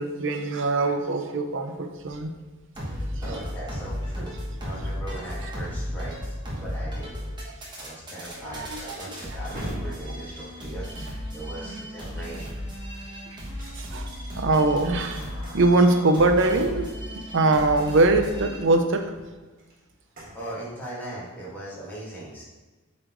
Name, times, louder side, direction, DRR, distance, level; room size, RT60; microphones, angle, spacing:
voice 1, 0.0-2.3 7.5-7.6 8.5-8.8 11.7-11.8 13.8-15.2 15.5-16.9 17.3-19.1, right 2 dB, 60° right, 6 dB, 0.6 m, -22 dB
sound 1, 1.6-11.4 12.2-14.4 14.8-20.5, equal, 40° right, 1.5 m, -47 dB
voice 2, 2.8-4.3 4.6-7.1 7.8-12.6 15.4-15.6 20.3-22.4, right 1 dB, 10° left, -8 dB, 1.7 m, -39 dB
sound 2, 2.8-18.6, equal, 20° right, 1.1 m, -35 dB
sound 3, 14.6-18.9, equal, 85° left, 1.5 m, -46 dB
7.7 x 4.2 x 3.0 m, 1.3 s
head